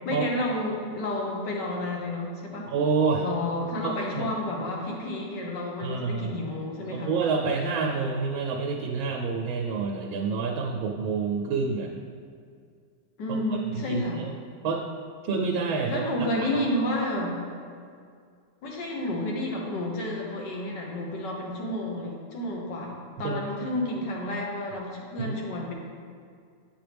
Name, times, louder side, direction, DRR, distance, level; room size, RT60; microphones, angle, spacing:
voice 1, 0.0-2.7 3.2-7.2 13.2-14.2 15.9-17.4 18.6-25.7, left 1 dB, 65° left, -1 dB, 1.6 m, -31 dB
voice 2, 2.7-3.2 3.8-4.2 5.8-6.3 6.9-11.9 13.3-13.6 13.9-14.3 14.6-14.9 15.2-16.7 23.2-23.4 25.2-25.3, right 4 dB, 85° right, 1 dB, 1.4 m, -28 dB
8.4 x 6.2 x 3.4 m, 2.2 s
omnidirectional pair, 2.1 m